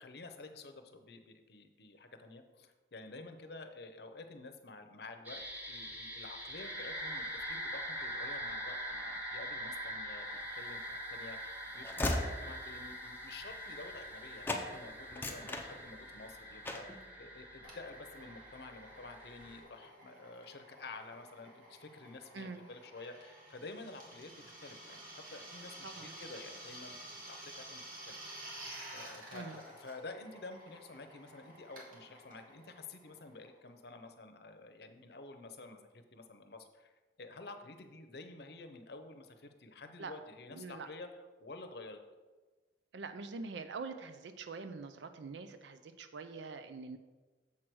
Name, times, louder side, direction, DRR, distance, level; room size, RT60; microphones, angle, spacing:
voice 1, 0.0-25.0 25.3-28.2 28.9-36.9 37.2-41.1 41.4-42.0, left 3 dB, 60° left, 7 dB, 0.7 m, -50 dB
sound 1, 5.2-19.6, equal, 10° right, 1.0 m, -43 dB
Train / Slam, 10.6-14.2 14.4-14.7 15.0-16.2 16.6-17.0, left 1 dB, 10° left, 0.6 m, -38 dB
Drill, 17.6-34.0, right 1 dB, 50° right, 1.8 m, -52 dB
voice 2, 22.3-22.6 25.8-26.1 29.3-29.6 40.0-40.1 40.5-40.9 42.9-47.0, right 4 dB, 75° right, 9 dB, 0.5 m, -44 dB
7.3 x 4.7 x 6.1 m, 1.3 s
head